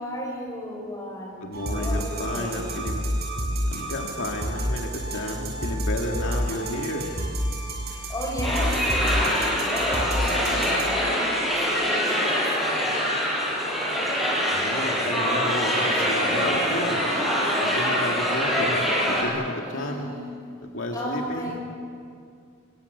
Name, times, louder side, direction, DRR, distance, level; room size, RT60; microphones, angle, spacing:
voice 1, 0.0-2.8 7.9-11.2 11.7-12.5 19.6-20.3 20.9-21.6, equal, 15° left, -1 dB, 7.3 m, -34 dB
voice 2, 1.4-3.0 3.7-7.1 14.5-17.3 17.6-20.2 20.7-21.5, left 1 dB, 65° left, 0 dB, 2.7 m, -32 dB
sound 1, 1.5-10.9, equal, 50° right, 7.9 m, -29 dB
sound 2, 8.4-19.2, equal, ahead, 7.7 m, -24 dB
29.0 x 24.0 x 8.5 m, 2.4 s
head